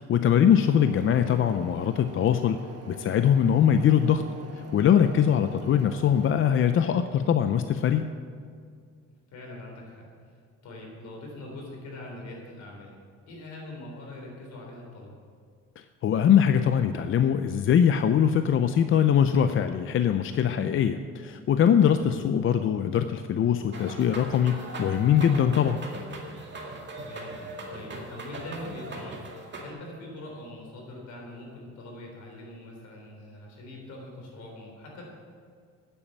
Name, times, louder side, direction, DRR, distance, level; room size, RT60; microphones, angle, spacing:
voice 1, 0.0-2.6 2.9-4.2 4.7-8.1 16.0-25.8, left 8 dB, 45° left, 9 dB, 0.5 m, -22 dB
sound 1, 0.6-6.3, right 3 dB, 55° right, 1.3 m, -45 dB
voice 2, 9.3-10.3 10.6-13.0 13.3-15.2 21.9-22.2 26.9-27.4 27.7-29.3 29.5-35.0, left 1 dB, 75° left, -1 dB, 3.8 m, -43 dB
sound 2, 23.7-29.7, right 2 dB, 40° right, 2.1 m, -39 dB
9.3 x 8.2 x 8.0 m, 2.1 s
cardioid pair, 115°, 29 cm